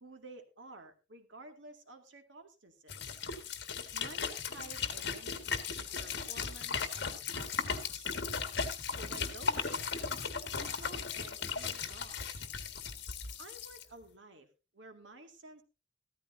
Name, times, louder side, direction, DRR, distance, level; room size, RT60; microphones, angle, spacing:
voice 1, 0.0-3.2 3.9-8.1 8.9-9.9 10.5-12.4 13.4-14.5 14.7-15.6, right 2 dB, 85° right, 6 dB, 2.2 m, -52 dB
sound 1, 2.9-13.8, left 5 dB, 65° left, 1.6 m, -37 dB
14.5 x 13.5 x 2.7 m, 0.30 s
head